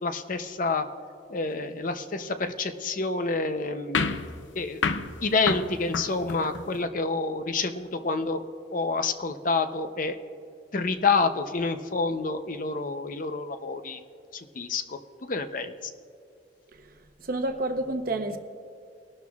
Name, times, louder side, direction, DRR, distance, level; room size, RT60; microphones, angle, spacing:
voice 1, 0.0-0.9 1.3-4.0 4.6-4.8 5.2-8.4 8.7-10.2 10.7-14.0 14.3-15.9, left 3 dB, 45° left, 9 dB, 0.6 m, -28 dB
sound 1, 3.9-6.8, left 5 dB, 90° left, 0.6 m, -30 dB
voice 2, 16.7-18.4, right 2 dB, 50° right, 7 dB, 0.9 m, -30 dB
22.5 x 12.0 x 2.4 m, 2.4 s
head